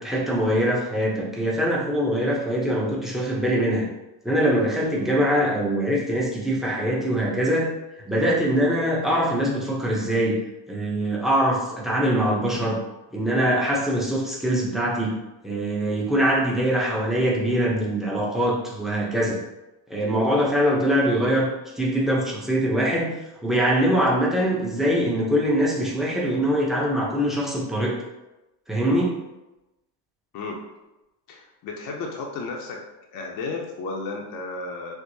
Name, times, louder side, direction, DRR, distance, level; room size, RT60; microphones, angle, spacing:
voice 1, 0.0-3.9 4.2-7.7 8.1-10.4 10.7-12.8 13.1-19.4 19.9-21.5 21.8-23.1 23.4-28.0 28.7-29.2, equal, ahead, -5 dB, 0.6 m, -23 dB
voice 2, 30.3-30.6 31.3-32.9 33.1-34.9, left 3 dB, 45° left, -1 dB, 0.6 m, -33 dB
4.5 x 2.1 x 2.7 m, 1.0 s
cardioid pair, 120°, 49 cm